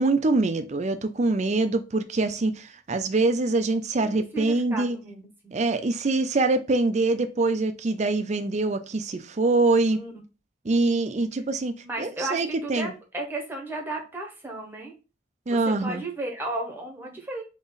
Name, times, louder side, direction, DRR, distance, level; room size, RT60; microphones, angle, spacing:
voice 1, 0.0-5.0 5.5-10.0 10.6-12.9 15.5-16.0, right 3 dB, 35° right, 0.4 m, -24 dB
voice 2, 4.0-5.6 9.9-10.1 11.8-14.9 15.5-17.4, right 2 dB, 10° right, 1.1 m, -34 dB
3.9 x 3.0 x 3.9 m
head